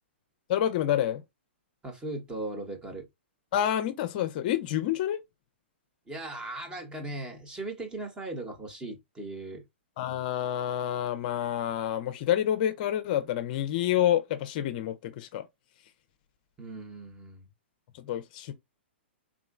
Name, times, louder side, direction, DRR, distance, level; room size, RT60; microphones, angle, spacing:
voice 1, 0.5-1.2 3.5-5.2 10.0-15.4 17.9-18.5, left 11 dB, 45° left, 0.5 m, -28 dB
voice 2, 1.8-3.1 6.1-9.6 16.6-17.5, right 2 dB, 15° right, 1.0 m, -38 dB
3.7 x 3.0 x 2.4 m
hypercardioid pair, 115°, 6 cm